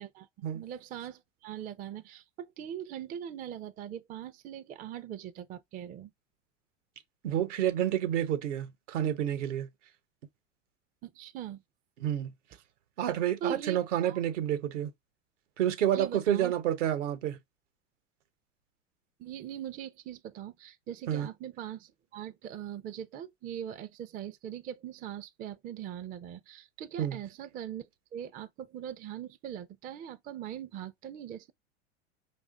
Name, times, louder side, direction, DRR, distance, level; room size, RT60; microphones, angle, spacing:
voice 1, 0.5-6.1 11.0-11.6 13.4-14.2 15.9-16.5 19.2-31.5, right 10 dB, 25° right, 0.4 m, -41 dB
voice 2, 7.2-9.7 12.0-12.3 13.0-14.9 15.6-17.4 21.1-21.3 27.0-27.2, right 11 dB, 70° right, 0.9 m, -29 dB
5.0 x 2.5 x 3.6 m
hypercardioid pair, 95°, 38 cm